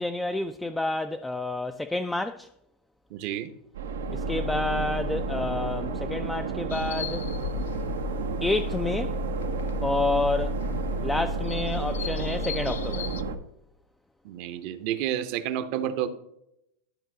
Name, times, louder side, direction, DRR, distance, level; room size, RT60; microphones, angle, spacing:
voice 1, 0.0-2.5 4.1-7.3 8.4-9.2 9.8-10.6 11.0-13.1, left 2 dB, 5° left, 0.3 m, -29 dB
voice 2, 3.1-3.5 14.2-16.1, right 11 dB, 55° right, 0.8 m, -30 dB
sound 1, 3.8-13.4, right 2 dB, 85° right, 0.7 m, -31 dB
sound 2, 6.7-13.2, left 9 dB, 85° left, 0.4 m, -38 dB
11.5 x 4.0 x 3.8 m
hypercardioid pair, 115°, 0 cm